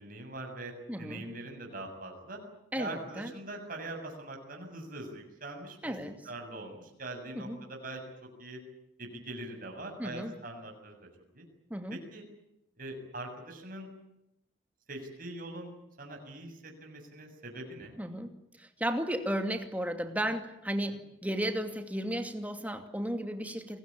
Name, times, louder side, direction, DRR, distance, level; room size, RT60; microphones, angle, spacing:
voice 1, 0.0-0.7 1.0-2.4 2.7-5.9 6.3-8.0 8.4-8.6 9.0-10.9 11.3-11.4 11.9-12.2 12.8-13.9 14.9-15.7 16.0-17.9 20.9-21.0, right 2 dB, 45° right, 2 dB, 7.2 m, -42 dB
voice 2, 0.9-1.3 2.7-3.3 5.8-6.3 7.3-7.6 10.0-10.4 11.7-12.0 18.0-23.8, equal, 10° right, 6 dB, 2.6 m, -34 dB
29.5 x 21.0 x 8.8 m, 0.83 s
head